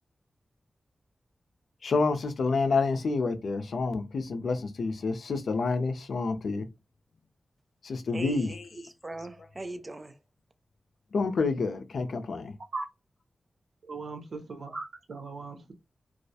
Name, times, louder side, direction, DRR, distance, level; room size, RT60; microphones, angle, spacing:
voice 1, 1.8-6.7 7.8-8.9 11.1-12.5, left 4 dB, 80° left, 0.4 m, -28 dB
voice 2, 8.1-10.2, right 2 dB, 30° right, 0.4 m, -40 dB
voice 3, 13.9-15.7, right 3 dB, 75° right, 0.6 m, -38 dB
2.3 x 2.0 x 2.7 m
wide cardioid pair, 85°, 0 cm